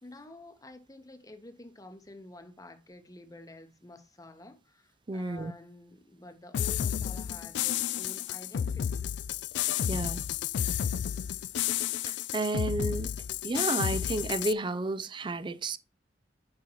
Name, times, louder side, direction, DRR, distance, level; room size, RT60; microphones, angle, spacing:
voice 1, 0.0-9.1, left 1 dB, 20° left, 0.9 m, -49 dB
voice 2, 5.1-5.5 9.9-10.2 12.0-13.1 13.4-15.8, right 2 dB, 25° right, 0.4 m, -32 dB
sound 1, 6.5-14.5, left 10 dB, 65° left, 0.3 m, -31 dB
8.7 x 5.4 x 3.0 m
head